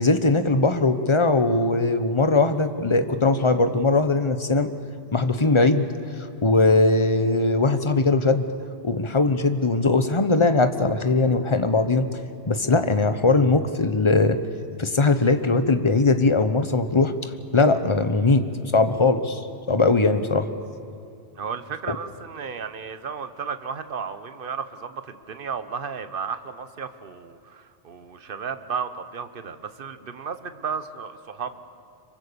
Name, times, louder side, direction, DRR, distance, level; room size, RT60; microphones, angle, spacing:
voice 1, 0.0-4.7 5.1-5.9 6.4-8.5 8.8-12.1 12.5-14.4 14.8-19.4 19.7-20.5, left 3 dB, 30° left, 9 dB, 1.2 m, -20 dB
voice 2, 21.3-31.6, right 6 dB, 55° right, 11 dB, 1.3 m, -33 dB
26.5 x 23.5 x 7.0 m, 2.6 s
omnidirectional pair, 1.1 m